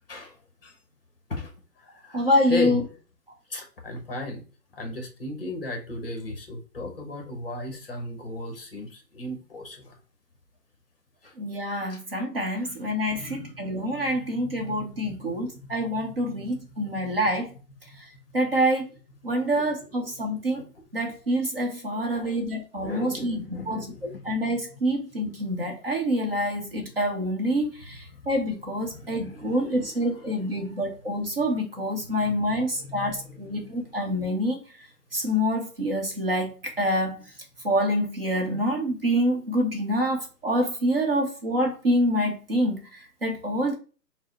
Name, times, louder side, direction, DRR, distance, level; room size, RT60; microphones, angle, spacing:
voice 1, 0.1-0.7 1.3-1.5 1.8-2.8 3.5-4.4 4.7-9.9 11.2-11.3 11.9-12.0 12.6-12.7 13.1-15.8 16.4-16.5 21.9-22.4 22.8-24.4 26.9-27.0 27.9-28.3 28.8-30.8 32.0-32.1 32.4-33.7 34.1-34.2, left 2 dB, 35° left, 4 dB, 0.9 m, -37 dB
voice 2, 2.1-2.8 11.4-17.5 18.3-18.9 19.2-20.6 20.9-34.6 35.1-37.2 37.6-43.7, equal, 35° right, 1 dB, 0.7 m, -26 dB
4.6 x 2.1 x 4.0 m, 0.35 s
hypercardioid pair, 165°, 48 cm